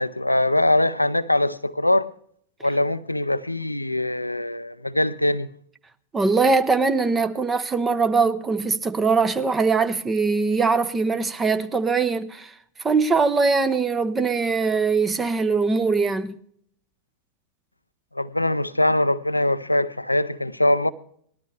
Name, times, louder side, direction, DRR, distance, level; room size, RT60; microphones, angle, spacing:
voice 1, 0.0-2.1 2.6-5.5 18.2-20.9, left 1 dB, 85° left, 0.5 m, -22 dB
voice 2, 6.1-12.5 12.8-16.4, right 4 dB, 15° right, 1.0 m, -21 dB
19.0 x 12.5 x 3.4 m
figure-of-eight pair, 90°, 0 cm